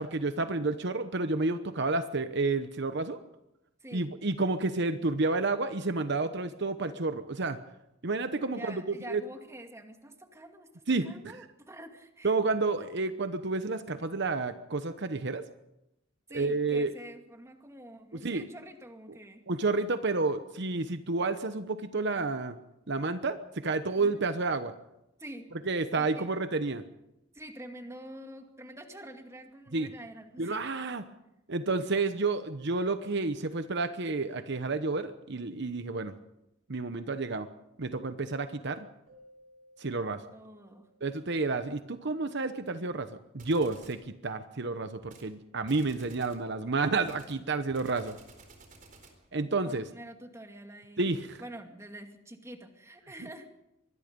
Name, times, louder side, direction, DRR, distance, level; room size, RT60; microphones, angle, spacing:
voice 1, 0.0-3.2 3.9-7.6 8.0-8.8 9.1-9.2 10.9-11.1 12.2-15.4 16.3-16.9 18.1-18.4 19.5-22.6 22.9-24.7 25.7-26.8 29.7-29.9 30.4-31.1 31.5-36.1 36.7-37.5 37.8-38.9 39.8-40.2 41.0-48.1 49.3-49.9 51.0-51.4, right 3 dB, 60° right, 10 dB, 1.0 m, -30 dB
voice 2, 3.8-4.1 8.5-12.4 12.8-12.9 16.3-19.4 23.9-24.3 25.2-25.5 25.9-26.3 27.3-30.6 40.3-40.9 49.5-51.1 51.4-53.5, right 1 dB, 15° right, 4 dB, 2.3 m, -47 dB
Keyboard (musical), 39.1-41.8, left 1 dB, 75° right, 6.5 m, -60 dB
sound 1, 43.4-44.0 45.0-45.3 45.6-46.5 47.0-49.3, right 3 dB, 45° right, 4.3 m, -54 dB
25.0 x 21.0 x 5.4 m, 0.86 s
head